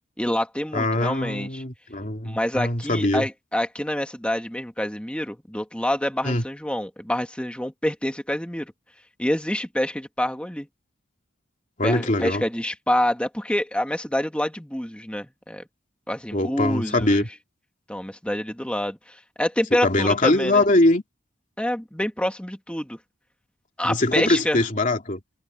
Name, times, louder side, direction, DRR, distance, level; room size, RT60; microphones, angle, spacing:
voice 1, 0.2-1.6 2.2-8.7 9.2-10.7 11.8-15.6 16.1-17.2 17.9-20.6 21.6-23.0 23.8-24.6, left 1 dB, 5° left, 1.7 m, -27 dB
voice 2, 0.7-3.2 6.2-6.4 11.8-12.4 16.3-17.3 19.8-21.0 23.8-25.2, left 2 dB, 40° left, 2.9 m, -22 dB
head